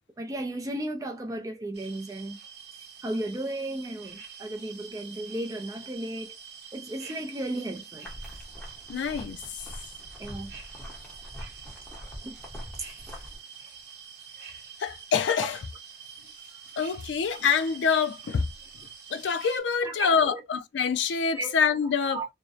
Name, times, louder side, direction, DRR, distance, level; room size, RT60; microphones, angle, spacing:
voice 1, 0.2-2.4 3.0-6.4 6.7-8.1 10.2-10.5 12.2-12.3 12.8-12.9 19.8-20.4 21.3-21.5 22.1-22.3, right 1 dB, 20° right, 0.4 m, -34 dB
sound 1, 1.7-19.6, right 7 dB, 75° right, 0.7 m, -46 dB
sound 2, 8.0-13.4, equal, 5° left, 0.8 m, -43 dB
voice 2, 8.9-9.4 14.8-15.6 16.8-18.5 19.1-22.2, left 6 dB, 85° left, 0.4 m, -26 dB
2.6 x 2.0 x 2.3 m
head